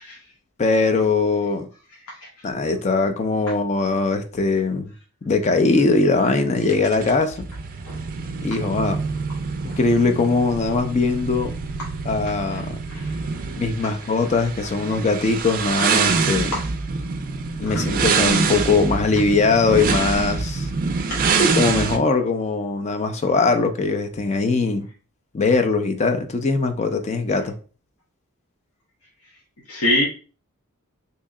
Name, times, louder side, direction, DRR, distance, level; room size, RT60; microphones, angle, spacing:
voice 1, 0.6-1.7 2.4-4.9 5.2-7.5 8.4-9.0 9.6-11.5 12.0-12.8 13.6-16.5 17.6-20.7 21.4-24.9 25.3-27.6, left 3 dB, 30° left, 0.4 m, -21 dB
sound 1, 6.6-22.0, right 4 dB, 40° right, 0.4 m, -25 dB
voice 2, 29.7-30.1, left 1 dB, 75° left, 0.9 m, -22 dB
3.1 x 2.8 x 3.6 m
head